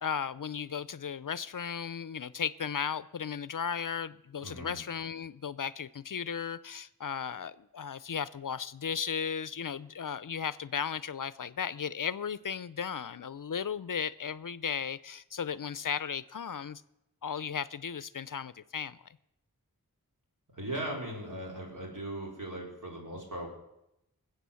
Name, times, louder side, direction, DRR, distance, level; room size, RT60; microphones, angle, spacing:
voice 1, 0.0-16.8 17.2-19.0, left 7 dB, 60° left, 0.5 m, -35 dB
voice 2, 4.4-4.8 20.5-23.5, right 1 dB, 55° right, 4.2 m, -38 dB
20.5 x 8.1 x 7.0 m
wide cardioid pair, 50°, 36 cm